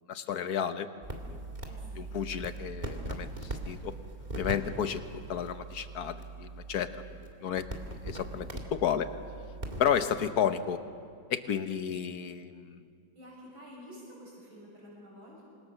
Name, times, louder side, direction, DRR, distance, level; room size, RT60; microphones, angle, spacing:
voice 1, 0.1-0.9 1.3-1.4 2.0-3.9 4.3-7.6 8.0-9.1 9.8-10.8 11.3-12.8, left 8 dB, 55° left, 9 dB, 1.4 m, -32 dB
sound 1, 1.0-9.9, right 2 dB, 20° right, 2.4 m, -41 dB
voice 2, 1.7-2.1 13.2-15.5, equal, 85° right, -3 dB, 7.6 m, -50 dB
26.5 x 26.5 x 6.8 m, 2.2 s
omnidirectional pair, 2.1 m